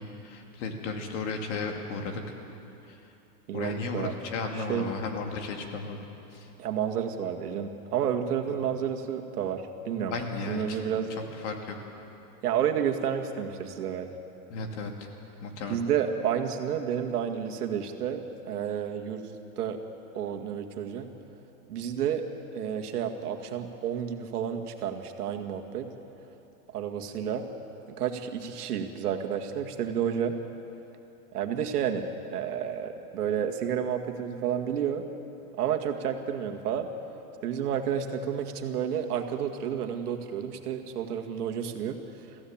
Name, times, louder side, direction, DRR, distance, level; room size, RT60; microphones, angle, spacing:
voice 1, 0.0-2.2 2.9-3.0 3.5-6.5 8.5-8.6 10.1-11.8 14.5-15.1 15.4-15.8, left 3 dB, 50° left, 3 dB, 2.6 m, -35 dB
voice 2, 3.5-4.1 4.7-4.9 6.6-10.1 10.5-11.1 12.4-14.1 15.7-19.3 19.6-19.8 20.1-21.1 21.7-22.2 22.5-25.9 26.7-27.5 27.9-30.3 31.3-32.1 32.3-35.0 35.6-36.9 37.4-42.0, right 8 dB, 80° right, 4 dB, 2.1 m, -30 dB
21.5 x 15.5 x 8.8 m, 2.9 s
supercardioid pair, 170°, 46 cm